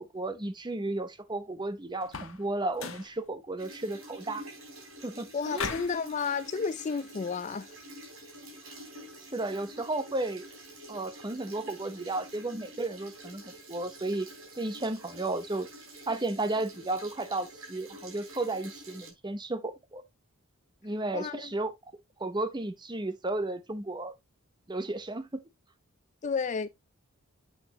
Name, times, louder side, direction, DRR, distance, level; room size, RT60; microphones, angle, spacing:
voice 1, 0.0-4.4 5.0-5.7 9.3-10.5 10.9-14.3 14.6-15.7 16.1-20.0 20.8-21.7 22.2-24.1 24.7-25.4, right 2 dB, 20° right, 0.8 m, -33 dB
sound 1, 2.0-2.4 2.7-3.1 5.5-6.0, left 5 dB, 60° left, 1.3 m, -36 dB
sound 2, 3.6-19.1, right 1 dB, 70° right, 3.6 m, -48 dB
voice 2, 5.3-7.7 21.1-21.5 26.2-26.7, left 5 dB, 35° left, 0.4 m, -32 dB
8.0 x 6.0 x 2.8 m
head